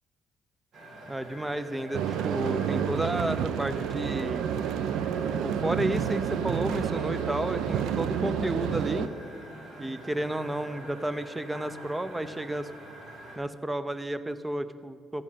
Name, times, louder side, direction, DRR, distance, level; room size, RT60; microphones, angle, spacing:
sound 1, 0.7-13.4, right 1 dB, 65° right, 2.3 m, -46 dB
voice 1, 1.1-4.5 5.4-9.1 9.8-12.7 13.4-15.2, right 1 dB, 10° right, 13 dB, 0.6 m, -32 dB
sound 2, 1.9-9.1, right 8 dB, 85° right, 0.4 m, -29 dB
14.0 x 5.5 x 5.7 m, 2.2 s
cardioid pair, 90°, 0 cm